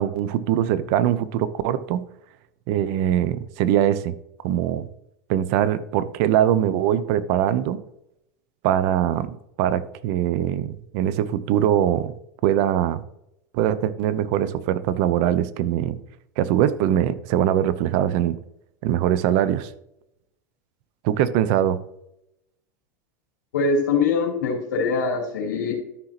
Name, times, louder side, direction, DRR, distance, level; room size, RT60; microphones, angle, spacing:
voice 1, 0.0-2.0 2.7-4.2 4.4-4.9 5.3-7.8 8.6-12.1 12.4-13.0 13.5-16.0 16.4-18.4 18.8-19.7 21.0-21.8, right 11 dB, 60° right, 14 dB, 0.8 m, -22 dB
voice 2, 23.5-25.7, left 4 dB, 85° left, 0 dB, 3.3 m, -23 dB
13.0 x 5.9 x 2.9 m, 0.80 s
hypercardioid pair, 105°, 10 cm